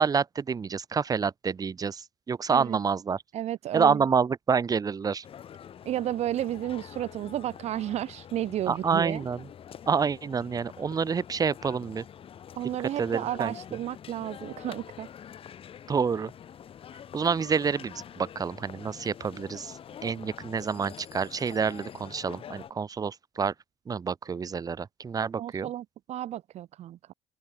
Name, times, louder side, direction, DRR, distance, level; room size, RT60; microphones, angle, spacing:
voice 1, 0.0-3.2 3.7-5.2 8.7-9.4 9.9-12.0 13.0-13.5 15.9-16.3 17.1-19.7 20.0-23.5 23.9-25.7, right 6 dB, 35° right, 1.8 m, -28 dB
voice 2, 3.3-4.0 5.8-9.2 12.6-15.1 25.4-27.1, right 12 dB, 70° right, 1.5 m, -32 dB
sound 1, 5.2-22.7, left 9 dB, 55° left, 7.3 m, -46 dB
cardioid pair, 130°, 11 cm